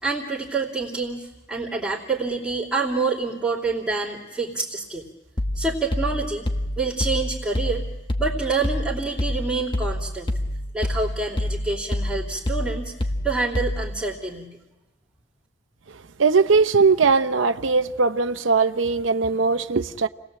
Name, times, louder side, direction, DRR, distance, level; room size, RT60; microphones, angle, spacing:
voice 1, 0.0-5.1 5.5-6.5 6.8-7.8 8.2-10.3 10.7-12.9 13.2-14.6, right 3 dB, 5° right, 3.0 m, -27 dB
sound 1, 5.4-14.1, left 1 dB, 25° left, 1.4 m, -27 dB
voice 2, 16.2-20.1, right 4 dB, 80° right, 0.8 m, -20 dB
29.5 x 19.5 x 7.6 m
head